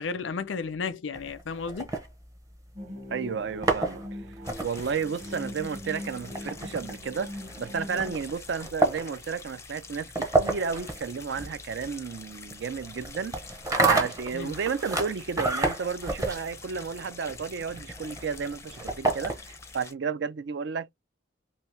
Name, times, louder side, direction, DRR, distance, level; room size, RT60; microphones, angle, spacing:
voice 1, 0.0-1.9 14.3-14.5, left 5 dB, 85° left, 0.6 m, -33 dB
sound 1, 1.1-2.8 3.4-19.7, right 2 dB, 20° right, 0.7 m, -31 dB
sound 2, 2.8-8.1, left 1 dB, 40° right, 1.3 m, -41 dB
voice 2, 3.1-4.0 4.6-13.4 13.8-19.3 19.7-20.9, right 6 dB, 70° right, 0.4 m, -32 dB
sound 3, 4.4-19.9, left 4 dB, 15° left, 0.4 m, -47 dB
2.8 x 2.8 x 3.2 m
head